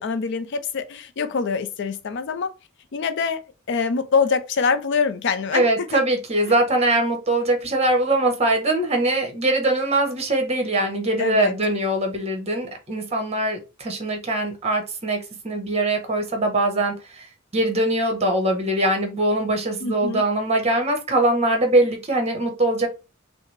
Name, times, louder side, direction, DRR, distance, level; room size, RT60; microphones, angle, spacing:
voice 1, 0.0-2.5 2.9-3.4 3.7-6.0 11.2-11.6 19.8-20.2, left 5 dB, 60° left, 0.5 m, -24 dB
voice 2, 5.5-15.2 15.4-17.3 17.5-22.9, right 1 dB, 30° right, 1.1 m, -22 dB
5.6 x 2.1 x 3.2 m
head